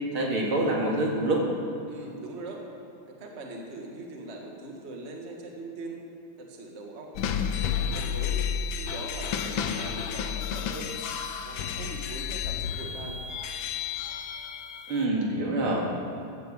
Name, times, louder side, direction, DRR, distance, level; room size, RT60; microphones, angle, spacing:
voice 1, 0.1-1.5 14.9-15.9, right 1 dB, 70° right, -2 dB, 3.1 m, -26 dB
voice 2, 1.9-2.6 3.1-6.0 6.4-7.1 7.5-8.5 8.8-10.9 11.4-13.2, right 2 dB, 30° right, 0 dB, 1.8 m, -41 dB
sound 1, 7.2-15.1, left 7 dB, 70° left, 1.5 m, -31 dB
16.0 x 10.5 x 7.3 m, 2.5 s
omnidirectional pair, 2.4 m